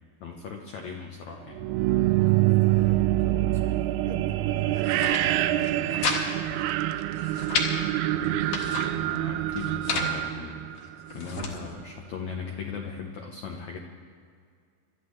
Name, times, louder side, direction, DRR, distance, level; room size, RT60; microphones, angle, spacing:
voice 1, 0.2-1.7 8.1-10.6 11.1-13.8, left 6 dB, 80° left, 1 dB, 1.6 m, -38 dB
sound 1, 1.5-11.4, right 16 dB, 85° right, 2.5 m, -26 dB
voice 2, 2.2-3.7 4.0-6.0 11.3-11.5, right 2 dB, 50° right, -3 dB, 1.9 m, -39 dB
sound 2, 4.7-5.2 5.6-6.2 6.5-6.6 7.0-7.7 8.2-8.9 9.5-10.1 10.8-11.5, left 5 dB, 60° left, 2.8 m, -31 dB
27.5 x 13.0 x 3.2 m, 2.2 s
omnidirectional pair, 4.7 m